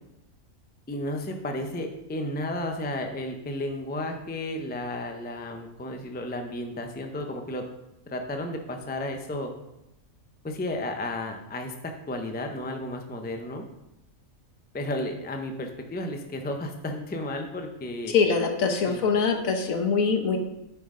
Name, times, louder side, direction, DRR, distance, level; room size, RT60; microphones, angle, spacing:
voice 1, 0.9-7.6 8.1-9.5 10.4-13.6 14.7-18.1 18.9-19.0, left 1 dB, 15° left, 4 dB, 0.4 m, -33 dB
voice 2, 18.1-20.4, left 5 dB, 75° left, 5 dB, 1.4 m, -23 dB
9.0 x 5.7 x 3.7 m, 0.88 s
omnidirectional pair, 1.4 m